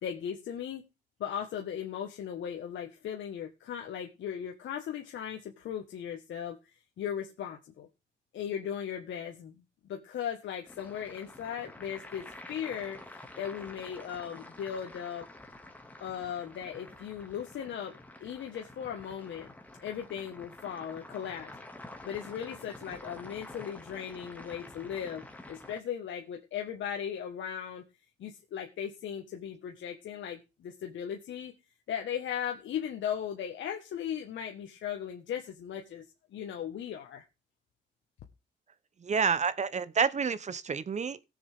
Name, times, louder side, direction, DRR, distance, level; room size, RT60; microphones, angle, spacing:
voice 1, 0.0-0.8 1.2-7.9 8.3-9.5 9.8-15.2 16.0-19.5 19.8-21.5 22.0-25.2 25.5-27.8 28.2-31.5 31.9-36.0 36.3-37.2, left 9 dB, 70° left, 1.6 m, -37 dB
sound 1, 10.7-25.8, left 1 dB, 10° left, 2.2 m, -49 dB
voice 2, 39.0-41.2, right 6 dB, 35° right, 1.0 m, -29 dB
17.5 x 7.2 x 3.6 m
cardioid pair, 90°, 20 cm